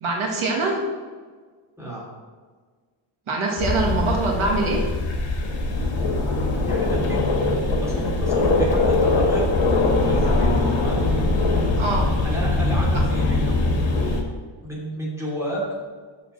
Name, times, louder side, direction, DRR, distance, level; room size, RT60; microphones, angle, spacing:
voice 1, 0.0-0.8 3.3-4.8 11.8-12.1, right 3 dB, 75° right, 0 dB, 1.7 m, -23 dB
sound 1, 3.6-14.2, left 2 dB, 60° left, 2.0 m, -21 dB
voice 2, 6.7-7.2 7.8-9.5 10.0-11.0 12.2-13.6 14.6-15.6, equal, 5° right, -6 dB, 2.9 m, -31 dB
6.9 x 6.8 x 6.0 m, 1.5 s
wide cardioid pair, 170°, 50 cm